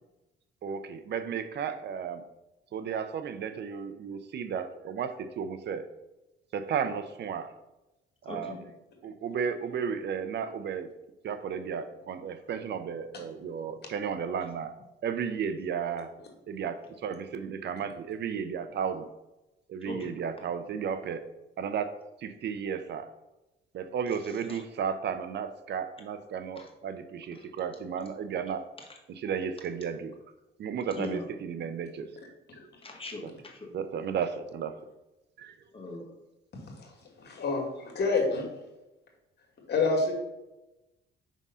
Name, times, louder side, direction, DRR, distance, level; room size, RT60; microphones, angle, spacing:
voice 1, 0.6-2.2 2.7-5.9 6.5-7.5 8.2-8.7 9.0-10.9 11.2-14.7 15.0-16.1 16.5-19.1 19.7-21.2 21.6-21.9 22.2-23.1 23.7-28.7 29.1-30.2 30.6-32.1 33.2-33.3 33.7-34.8 35.4-35.6, right 7 dB, 60° right, 10 dB, 0.6 m, -34 dB
voice 2, 8.3-8.6 19.9-20.2 24.5-24.6 26.6-26.7 30.9-31.2 32.8-33.7 35.7-36.1, left 2 dB, 30° left, 0 dB, 1.7 m, -40 dB
voice 3, 37.2-38.4 39.7-40.1, left 3 dB, 55° left, 1 dB, 1.9 m, -27 dB
5.2 x 3.6 x 5.5 m, 0.99 s
cardioid pair, 90°, 20 cm